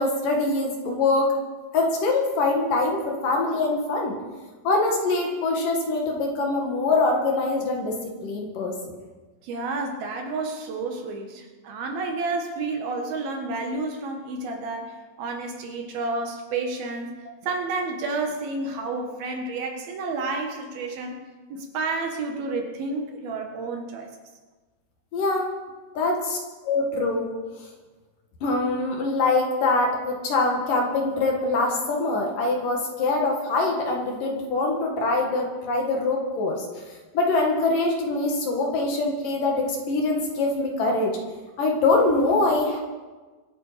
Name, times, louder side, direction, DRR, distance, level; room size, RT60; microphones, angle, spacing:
voice 1, 0.0-1.3 1.7-4.2 4.6-7.9 8.2-8.7 25.1-25.5 25.9-26.4 26.6-27.3 28.4-36.7 37.1-41.2 41.6-42.8, left 3 dB, 60° left, 1 dB, 3.1 m, -23 dB
voice 2, 9.4-17.1 17.4-24.1, right 3 dB, 65° right, 3 dB, 3.2 m, -30 dB
24.5 x 8.9 x 5.1 m, 1.3 s
omnidirectional pair, 4.9 m